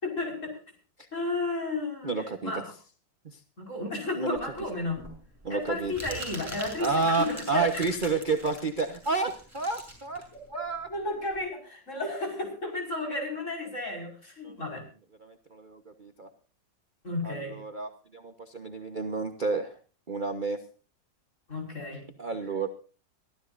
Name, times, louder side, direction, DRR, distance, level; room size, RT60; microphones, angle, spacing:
voice 1, 0.0-0.5 1.1-2.1 2.4-2.6 3.6-5.1 5.5-7.7 10.9-14.8 17.0-17.6 21.5-22.0, left 2 dB, 40° left, 2 dB, 5.8 m, -33 dB
voice 2, 2.0-2.6 3.2-3.4 4.1-4.4 5.4-5.9 6.8-10.2 10.5-10.9 14.4-14.7 15.2-16.3 17.2-19.8 20.1-20.6 21.9-22.7, right 4 dB, 30° right, 5 dB, 1.1 m, -30 dB
Crumpling crinkling, 4.4-11.4, right 1 dB, 10° right, 6.5 m, -44 dB
23.5 x 14.5 x 2.6 m, 0.39 s
omnidirectional pair, 2.0 m